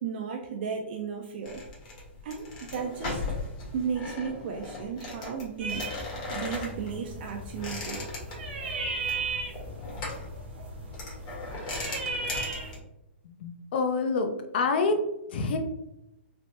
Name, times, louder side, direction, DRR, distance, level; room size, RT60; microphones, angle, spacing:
voice 1, 0.0-1.6 2.2-3.2 3.7-5.9 6.3-8.1, right 6 dB, 55° right, 2 dB, 0.4 m, -34 dB
sound 1, 1.5-12.8, left 2 dB, 40° left, 1.2 m, -38 dB
sound 2, 5.6-12.8, right 3 dB, 75° right, 0.9 m, -36 dB
voice 2, 13.4-14.3 14.5-15.0 15.3-15.6, left 4 dB, 60° left, 7 dB, 0.5 m, -26 dB
3.2 x 2.1 x 2.7 m, 0.89 s
hypercardioid pair, 140°, 6 cm